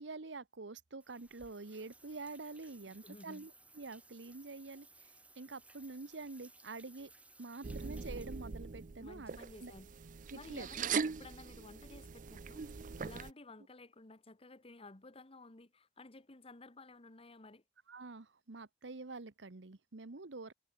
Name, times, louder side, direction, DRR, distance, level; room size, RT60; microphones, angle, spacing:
voice 1, 0.0-7.1 7.4-9.7 10.3-10.7 17.9-20.5, right 3 dB, 90° right, 1.1 m, -47 dB
sound 1, 1.0-8.9, right 2 dB, 10° right, 1.3 m, -61 dB
voice 2, 2.8-3.5 9.0-9.9 10.3-17.6, left 2 dB, 35° left, 1.4 m, -54 dB
sound 2, 7.6-13.3, right 5 dB, 45° right, 0.5 m, -41 dB
head